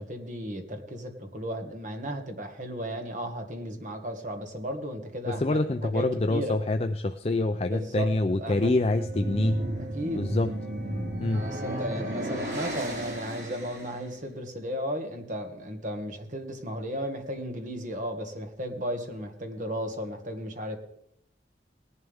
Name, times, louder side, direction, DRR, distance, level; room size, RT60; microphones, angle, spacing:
voice 1, 0.0-6.0 6.3-6.5 7.7-8.1 8.4-8.7 9.9-10.4 11.3-20.8, equal, 45° right, 4 dB, 1.9 m, -35 dB
voice 2, 5.2-9.6 10.1-10.5 11.2-11.5, left 2 dB, 35° left, 8 dB, 0.5 m, -26 dB
sound 1, 8.7-14.1, right 1 dB, 80° right, 4.1 m, -33 dB
18.5 x 11.0 x 3.5 m, 0.76 s
head